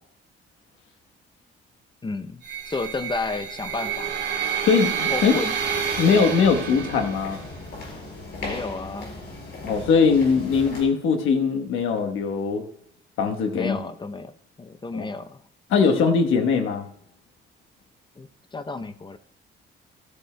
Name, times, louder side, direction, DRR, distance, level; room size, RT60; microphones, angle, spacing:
voice 1, 2.0-4.1 5.1-5.5 8.4-9.1 13.5-14.3 14.6-15.4 18.2-19.2, left 3 dB, 25° left, 10 dB, 0.6 m, -32 dB
sound 1, 2.4-7.5, right 7 dB, 60° right, 2.3 m, -29 dB
voice 2, 4.7-5.3 6.0-7.4 9.6-12.6 13.2-13.8 14.9-15.1 15.7-16.9, left 5 dB, 85° left, 5 dB, 1.2 m, -21 dB
sound 2, 5.6-10.8, left 2 dB, 65° left, 5.0 m, -38 dB
14.5 x 13.5 x 2.2 m, 0.71 s
cardioid pair, 90°, 20 cm